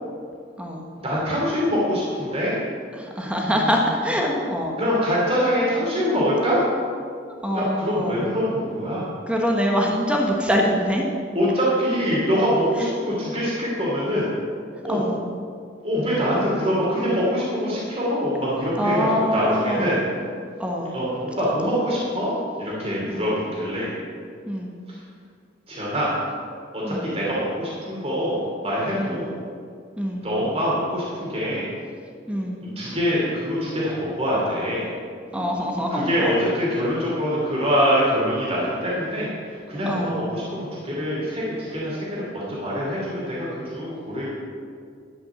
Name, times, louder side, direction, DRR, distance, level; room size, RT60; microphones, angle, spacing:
voice 1, 1.0-2.5 3.4-3.8 4.8-6.6 7.5-9.1 11.3-14.3 14.8-15.1 15.8-20.0 20.9-21.1 21.4-22.3 22.6-23.9 25.7-26.1 26.7-29.3 30.2-31.7 32.6-34.9 35.9-44.4, equal, 30° right, -6 dB, 2.8 m, -24 dB
voice 2, 3.0-4.7 7.4-8.3 9.3-11.0 14.9-15.2 18.8-20.0 20.6-20.9 23.1-23.3 24.4-24.7 26.8-27.1 28.9-29.2 30.0-30.3 32.3-32.6 35.3-36.4 39.9-40.2, equal, 5° right, 0 dB, 1.2 m, -24 dB
11.5 x 6.2 x 7.0 m, 2.3 s
head